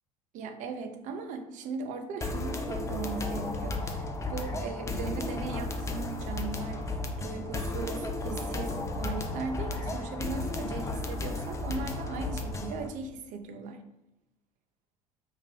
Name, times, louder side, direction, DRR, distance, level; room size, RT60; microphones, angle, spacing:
voice 1, 0.3-13.8, right 4 dB, 45° right, 5 dB, 0.5 m, -38 dB
sound 1, 2.2-12.9, left 2 dB, 15° left, 0.4 m, -34 dB
5.0 x 2.1 x 3.7 m, 0.91 s
figure-of-eight pair, 70°, 18 cm